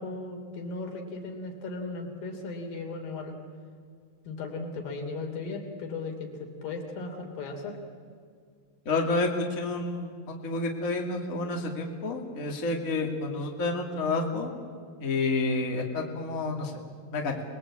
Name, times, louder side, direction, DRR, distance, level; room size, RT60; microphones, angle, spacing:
voice 1, 0.0-3.4 4.3-7.8, left 3 dB, 85° left, 2 dB, 4.7 m, -36 dB
voice 2, 8.9-14.5 15.0-16.7 17.1-17.4, left 3 dB, 25° left, 1 dB, 2.5 m, -29 dB
27.0 x 20.5 x 8.6 m, 2.1 s
omnidirectional pair, 4.0 m